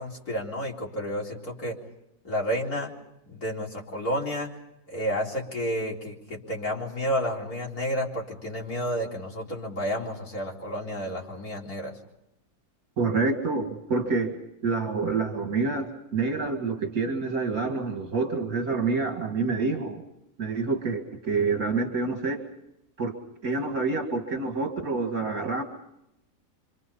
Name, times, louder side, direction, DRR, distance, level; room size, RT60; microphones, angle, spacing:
voice 1, 0.0-1.8 2.2-2.9 3.3-4.5 4.9-11.9, equal, 70° left, -2 dB, 4.6 m, -31 dB
voice 2, 13.0-14.3 14.6-20.0 20.4-22.4 23.0-23.1 23.4-25.6, right 4 dB, 70° right, 4 dB, 2.6 m, -27 dB
28.0 x 26.0 x 5.5 m, 0.83 s
omnidirectional pair, 1.6 m